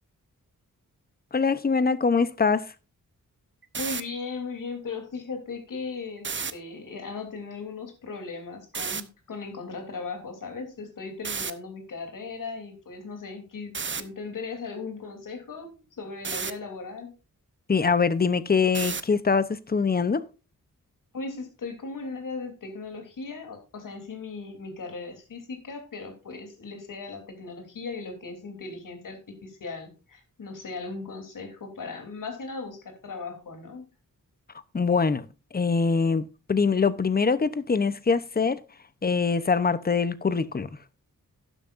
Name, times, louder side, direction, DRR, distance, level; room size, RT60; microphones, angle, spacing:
voice 1, 1.3-2.7 17.7-20.2 34.7-35.2 35.5-38.6 39.0-40.7, left 5 dB, 30° left, 0.8 m, -23 dB
sound 1, 3.6-4.0 6.2-6.5 8.7-9.0 11.2-11.5 13.7-14.0 16.2-16.5 18.7-19.1, right 5 dB, 35° right, 0.8 m, -31 dB
voice 2, 3.8-17.1 21.1-33.8, left 4 dB, 75° left, 3.3 m, -37 dB
11.5 x 11.0 x 2.5 m
wide cardioid pair, 160°, 33 cm